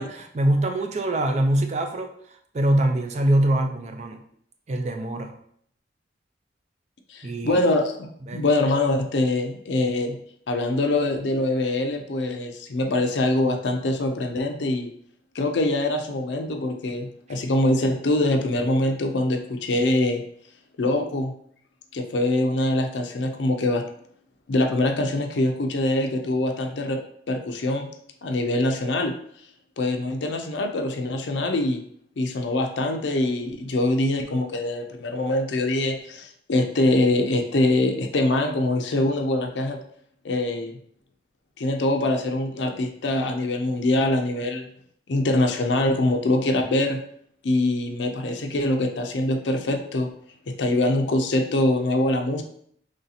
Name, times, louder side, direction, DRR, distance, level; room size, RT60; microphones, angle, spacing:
voice 1, 0.0-2.1 2.5-4.2 4.7-5.4 7.2-7.6 8.2-8.4, right 1 dB, 35° right, 5 dB, 0.4 m, -23 dB
voice 2, 7.1-10.2 10.5-14.9 15.3-20.2 20.8-21.3 21.9-23.8 24.5-27.0 27.3-27.9 28.2-29.1 29.8-31.8 32.2-39.8 40.2-40.8 41.6-44.7 45.1-47.0 47.4-50.1 50.5-52.4, left 1 dB, 70° left, 4 dB, 0.5 m, -24 dB
3.2 x 2.8 x 4.0 m, 0.65 s
head